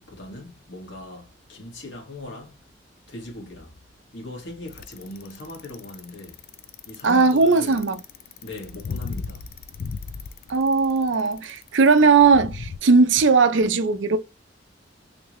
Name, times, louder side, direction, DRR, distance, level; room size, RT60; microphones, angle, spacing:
voice 1, 0.0-2.6 3.1-3.8 4.1-6.4 6.9-7.8 8.4-9.5, left 1 dB, 75° left, 1.7 m, -39 dB
Bicycle, 4.7-12.8, left 5 dB, 55° left, 0.4 m, -36 dB
voice 2, 7.0-8.0 10.5-14.2, right 4 dB, 75° right, 0.5 m, -18 dB
3.3 x 2.8 x 3.0 m
head